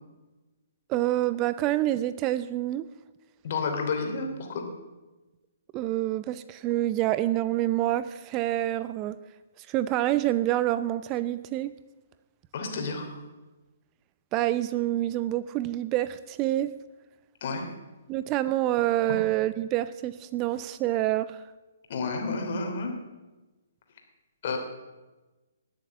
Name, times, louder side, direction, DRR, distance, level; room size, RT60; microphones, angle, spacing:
voice 1, 0.9-2.9 5.7-9.2 9.6-11.7 14.3-16.7 18.1-21.4, right 14 dB, 25° right, 15 dB, 0.5 m, -27 dB
voice 2, 3.4-4.6 12.5-13.2 17.4-17.7 21.9-22.9 24.4-24.6, left 4 dB, 50° left, 3 dB, 3.0 m, -30 dB
19.5 x 7.4 x 7.2 m, 1.2 s
figure-of-eight pair, 125°, 0 cm